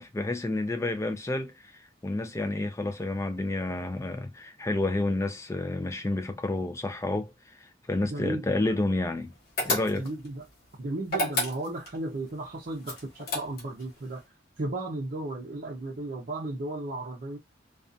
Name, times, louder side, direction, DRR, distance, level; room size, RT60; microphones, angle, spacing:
voice 1, 0.0-9.3 9.6-10.1, left 2 dB, 15° left, 0.4 m, -30 dB
voice 2, 8.1-8.7 10.0-10.4 10.8-14.2 14.6-17.4, right 2 dB, 45° right, 0.6 m, -35 dB
sound 1, 9.6-10.3 11.1-12.0 12.8-13.8, left 1 dB, 50° left, 1.0 m, -30 dB
2.5 x 2.3 x 2.4 m
head